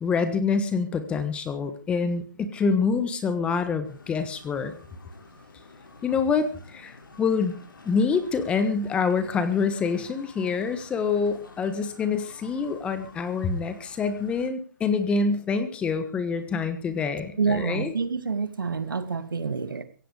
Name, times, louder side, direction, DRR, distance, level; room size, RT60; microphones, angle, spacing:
voice 1, 0.0-4.8 6.0-7.5 7.8-17.9, left 5 dB, 10° left, 1.4 m, -26 dB
sound 1, 3.8-14.5, left 3 dB, 85° left, 6.3 m, -50 dB
voice 2, 17.4-19.8, right 5 dB, 85° right, 2.5 m, -27 dB
16.5 x 16.0 x 5.0 m
hypercardioid pair, 160°, 11 cm